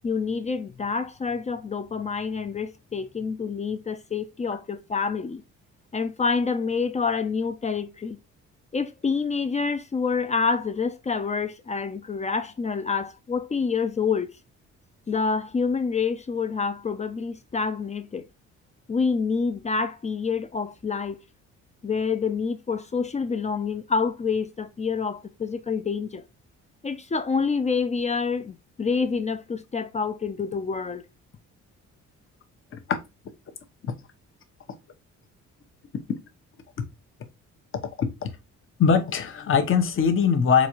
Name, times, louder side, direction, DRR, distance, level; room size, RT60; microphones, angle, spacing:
voice 1, 0.0-5.4 5.9-8.2 8.7-14.3 15.1-18.2 18.9-21.2 21.8-26.2 26.8-31.0, left 5 dB, 25° left, 0.4 m, -27 dB
voice 2, 38.8-40.7, left 6 dB, 45° left, 0.8 m, -21 dB
4.0 x 2.4 x 3.0 m
cardioid pair, 90°, 30 cm